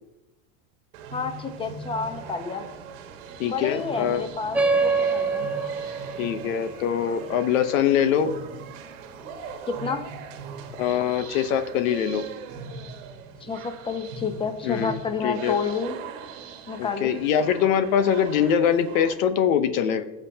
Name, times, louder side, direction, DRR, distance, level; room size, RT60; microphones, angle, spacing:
sound 1, 0.9-19.1, right 5 dB, 75° right, 1.5 m, -40 dB
voice 1, 1.1-2.7 3.4-5.5 9.7-10.1 13.4-16.0 16.7-17.1, left 5 dB, 15° left, 7 dB, 1.0 m, -30 dB
voice 2, 3.4-4.2 6.2-8.3 10.8-12.2 14.6-15.6 16.8-20.0, left 8 dB, 80° left, 10 dB, 1.0 m, -23 dB
sound 2, 4.5-9.5, right 4 dB, 5° right, 0.3 m, -27 dB
18.0 x 7.0 x 2.8 m, 1.0 s
supercardioid pair, 125°, 40 cm